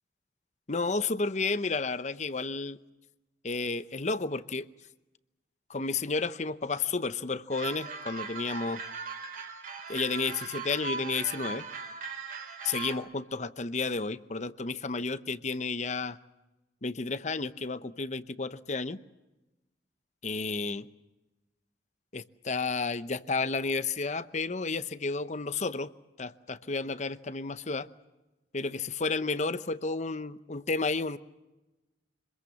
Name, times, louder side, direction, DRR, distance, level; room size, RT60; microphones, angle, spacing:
voice 1, 0.7-2.8 3.4-4.7 5.7-8.8 9.9-11.6 12.6-16.2 16.8-19.0 20.2-20.9 22.1-25.9 26.2-27.9 28.5-31.2, left 4 dB, 40° left, 14 dB, 0.8 m, -32 dB
sound 1, 7.5-12.9, right 4 dB, 50° right, 3.0 m, -39 dB
26.0 x 21.5 x 7.2 m, 1.1 s
head